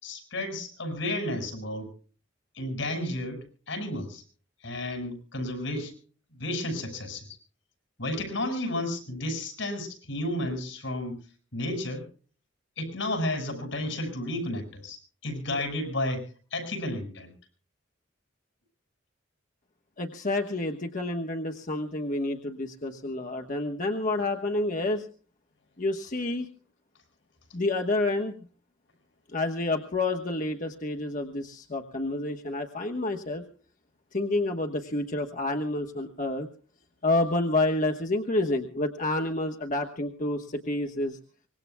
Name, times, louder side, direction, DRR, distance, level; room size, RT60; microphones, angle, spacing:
voice 1, 0.0-1.9 2.5-4.2 4.6-5.9 6.3-7.3 8.0-11.2 11.5-12.0 12.8-17.3, left 1 dB, 75° left, 5 dB, 6.3 m, -32 dB
voice 2, 20.0-25.1 25.8-26.5 27.5-28.3 29.3-33.4 34.1-36.5 37.0-41.2, left 2 dB, 45° left, 3 dB, 1.2 m, -29 dB
25.0 x 20.5 x 2.2 m, 0.42 s
head